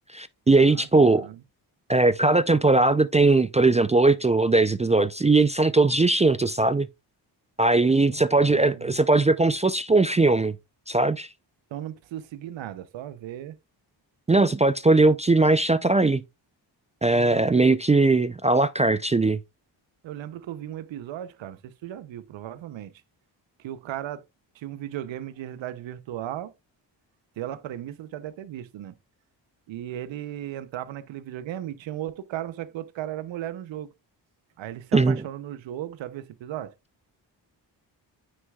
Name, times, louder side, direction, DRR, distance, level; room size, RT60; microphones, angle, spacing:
voice 1, 0.1-1.3 1.9-6.9 7.6-10.5 10.9-11.3 14.3-16.2 17.0-19.4 34.9-35.2, right 3 dB, 15° right, 0.4 m, -20 dB
voice 2, 8.1-9.1 11.7-13.6 17.1-17.8 20.0-22.9 23.6-24.2 24.5-26.5 27.4-28.9 29.7-33.9 34.6-36.7, right 12 dB, 85° right, 0.7 m, -36 dB
9.2 x 6.4 x 2.3 m
cardioid pair, 65°, 45 cm